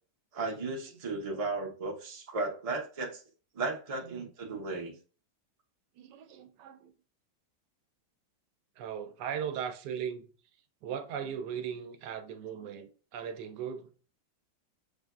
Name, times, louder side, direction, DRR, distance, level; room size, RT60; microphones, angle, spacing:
voice 1, 0.3-3.2 3.5-4.9, right 3 dB, 45° right, 0.4 m, -35 dB
voice 2, 6.0-6.9 8.8-10.3 10.8-13.9, right 8 dB, 75° right, 1.2 m, -38 dB
6.5 x 2.5 x 2.3 m
omnidirectional pair, 1.9 m